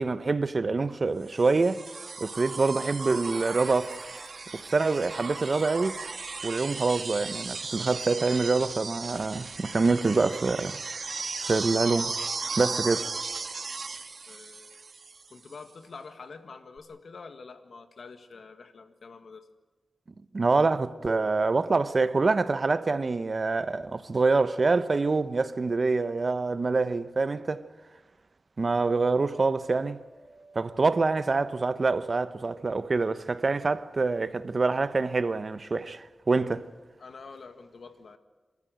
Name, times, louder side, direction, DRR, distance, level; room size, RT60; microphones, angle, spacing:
voice 1, 0.0-1.8 2.2-4.1 4.5-6.0 6.4-10.8 11.4-12.2 12.6-13.1 20.3-27.6 28.6-30.0 30.5-36.7, right 3 dB, 50° right, 0.8 m, -26 dB
sound 1, 1.3-15.3 16.8-16.9, right 4 dB, 65° right, 1.8 m, -36 dB
sound 2, 3.4-9.9, left 1 dB, 15° left, 7.0 m, -58 dB
voice 2, 14.3-14.9 15.3-19.5 37.0-38.2, left 4 dB, 80° left, 1.7 m, -46 dB
Piano, 28.8-34.7, right 2 dB, 10° right, 3.5 m, -52 dB
28.0 x 13.5 x 9.2 m
wide cardioid pair, 100°, 0 cm